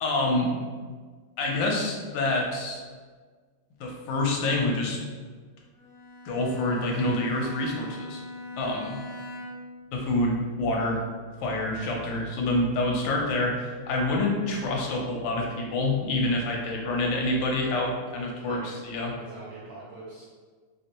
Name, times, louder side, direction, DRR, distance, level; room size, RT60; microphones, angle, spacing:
voice 1, 0.0-0.5 1.4-2.8 3.8-5.0 6.2-8.2 8.6-9.0 9.9-11.0 11.4-19.1, left 2 dB, 75° left, -1 dB, 1.3 m, -27 dB
Bowed string instrument, 5.8-9.8, left 1 dB, 60° left, 0.6 m, -41 dB
voice 2, 18.4-18.9 19.1-20.2, right 2 dB, 70° right, -6 dB, 0.9 m, -44 dB
3.2 x 2.5 x 2.8 m, 1.5 s
omnidirectional pair, 2.1 m